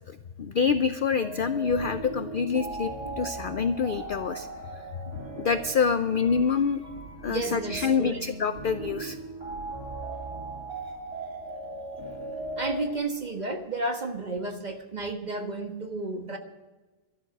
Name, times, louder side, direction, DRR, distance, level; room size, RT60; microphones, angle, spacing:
voice 1, 0.1-4.5 5.4-6.8 7.2-9.2, left 5 dB, 70° left, 11 dB, 0.5 m, -26 dB
sound 1, 1.2-13.0, right 2 dB, 70° right, 3.8 m, -38 dB
voice 2, 7.3-8.2 12.6-16.4, right 3 dB, 30° right, 5 dB, 1.4 m, -32 dB
13.0 x 12.5 x 5.9 m, 1.2 s
omnidirectional pair, 1.5 m